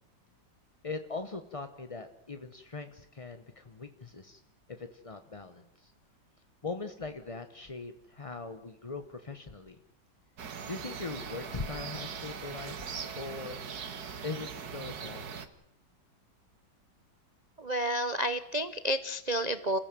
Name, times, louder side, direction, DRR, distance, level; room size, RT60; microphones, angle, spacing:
voice 1, 0.8-4.4 4.8-5.9 6.6-9.8 10.7-12.9 13.2-13.6 14.2-15.4, left 4 dB, 30° left, 8 dB, 0.6 m, -41 dB
sound 1, 10.4-15.5, right 6 dB, 55° right, 1.8 m, -40 dB
voice 2, 17.6-19.8, right 1 dB, 75° right, 11 dB, 0.3 m, -30 dB
28.0 x 16.0 x 7.6 m, 0.80 s
omnidirectional pair, 2.2 m